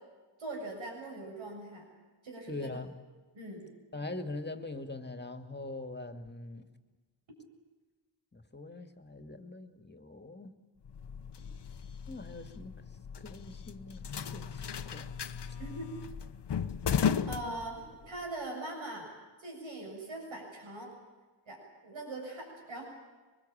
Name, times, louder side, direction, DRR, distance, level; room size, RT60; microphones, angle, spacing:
voice 1, 0.4-1.9 2.2-2.5 3.3-3.7 15.6-15.9 17.1-17.8 18.1-19.1 19.4-20.9 21.5-22.8, right 2 dB, 90° right, 1 dB, 7.3 m, -41 dB
voice 2, 2.5-2.9 3.9-6.7 8.3-10.5 12.1-12.7 13.2-14.1 14.3-15.2, left 2 dB, 20° left, 7 dB, 2.3 m, -42 dB
sound 1, 10.8-18.2, left 7 dB, 60° left, 1.1 m, -36 dB
24.5 x 20.5 x 8.8 m, 1.3 s
cardioid pair, 65°, 46 cm